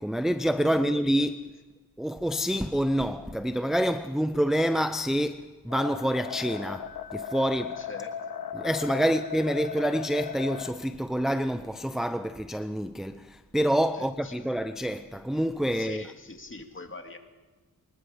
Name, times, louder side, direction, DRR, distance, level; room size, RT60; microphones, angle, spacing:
voice 1, 0.0-1.4 2.0-7.8 8.5-16.0, equal, ahead, 0.6 m, -27 dB
voice 2, 0.6-1.0 7.8-8.4 13.9-14.5 15.7-17.2, left 3 dB, 35° left, 2.2 m, -43 dB
sound 1, 5.7-10.7, left 7 dB, 85° left, 1.4 m, -37 dB
25.0 x 20.5 x 5.1 m
wide cardioid pair, 105°, 37 cm